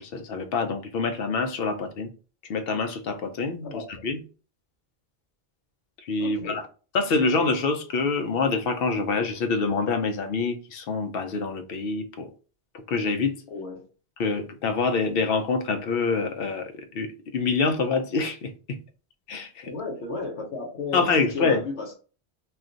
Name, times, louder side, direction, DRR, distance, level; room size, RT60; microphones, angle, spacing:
voice 1, 0.0-2.1 2.5-3.7 4.0-4.2 6.0-6.6 6.9-12.3 12.9-13.4 14.2-18.8 19.3-19.7 20.9-21.6, left 4 dB, 65° left, 0.7 m, -26 dB
voice 2, 6.2-6.6 13.5-13.9 19.6-21.9, left 3 dB, 85° left, 1.0 m, -34 dB
2.4 x 2.2 x 3.7 m
omnidirectional pair, 1.1 m